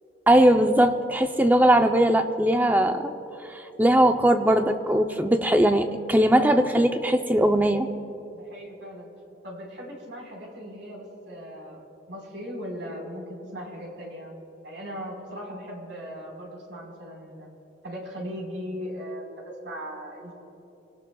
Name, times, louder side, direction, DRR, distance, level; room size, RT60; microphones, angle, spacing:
voice 1, 0.3-3.1 3.5-7.9, right 1 dB, 10° right, 6 dB, 0.6 m, -20 dB
voice 2, 8.3-9.1 9.4-11.8 12.1-14.3 14.6-17.5 17.8-20.3, equal, 90° right, -2 dB, 4.4 m, -38 dB
27.0 x 18.0 x 2.3 m, 2.9 s
head